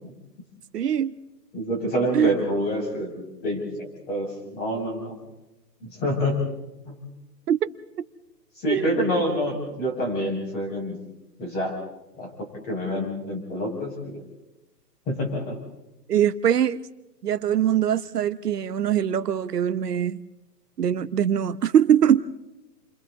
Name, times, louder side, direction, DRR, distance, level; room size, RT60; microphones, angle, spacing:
voice 1, 0.7-1.1 2.1-2.3 7.5-7.7 8.7-9.1 16.1-16.8 17.2-20.2 20.8-22.2, right 9 dB, 70° right, 13 dB, 1.0 m, -22 dB
voice 2, 1.5-5.2 6.0-6.4 6.9-7.0 8.6-11.0 11.4-11.7 12.2-14.2 15.1-15.6, equal, 20° left, 1 dB, 5.3 m, -27 dB
29.0 x 24.0 x 3.7 m, 0.97 s
hypercardioid pair, 155°, 49 cm